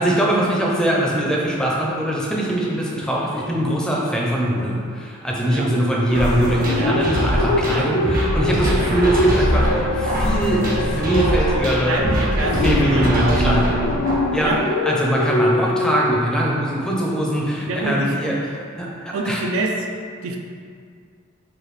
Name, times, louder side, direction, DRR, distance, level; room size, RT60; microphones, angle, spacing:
voice 1, 0.0-12.1 12.6-13.7 14.3-14.5 14.8-19.4, right 1 dB, 5° left, -4 dB, 0.5 m, -22 dB
sound 1, 6.1-14.1, equal, 45° right, 0.7 m, -23 dB
sound 2, 6.4-13.4 13.7-16.2, left 2 dB, 85° left, 0.3 m, -25 dB
sound 3, 9.4-14.6, equal, 65° left, 0.8 m, -27 dB
voice 2, 11.8-13.6 14.4-14.6 17.7-18.2 19.1-19.7 20.2-20.4, right 2 dB, 75° right, 2 dB, 0.4 m, -26 dB
4.9 x 2.3 x 3.1 m, 2.2 s
head